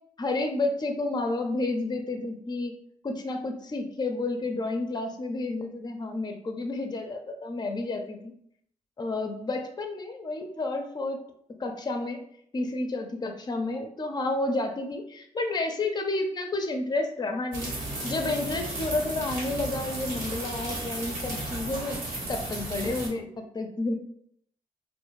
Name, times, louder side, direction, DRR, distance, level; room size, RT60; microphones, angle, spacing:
voice 1, 0.2-2.7 3.0-8.3 9.0-11.2 11.6-12.2 12.5-17.8 18.0-22.0 22.3-23.9, left 2 dB, 30° left, 5 dB, 0.5 m, -30 dB
sound 1, 17.5-23.1, right 2 dB, 75° right, 0.9 m, -34 dB
2.3 x 2.1 x 3.0 m, 0.69 s
supercardioid pair, 50°, 15 cm